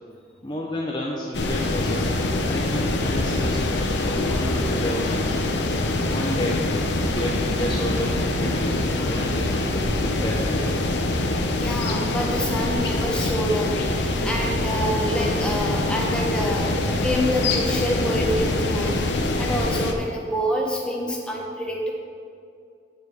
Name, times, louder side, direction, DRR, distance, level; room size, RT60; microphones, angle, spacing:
voice 1, 0.4-5.6 6.1-6.6 7.0-9.5 10.0-10.9, left 1 dB, 25° left, -3 dB, 0.7 m, -31 dB
sound 1, 1.3-19.9, left 2 dB, 75° left, 0.8 m, -24 dB
voice 2, 11.5-21.9, equal, 5° left, -2 dB, 1.2 m, -27 dB
8.3 x 7.1 x 4.9 m, 2.4 s
head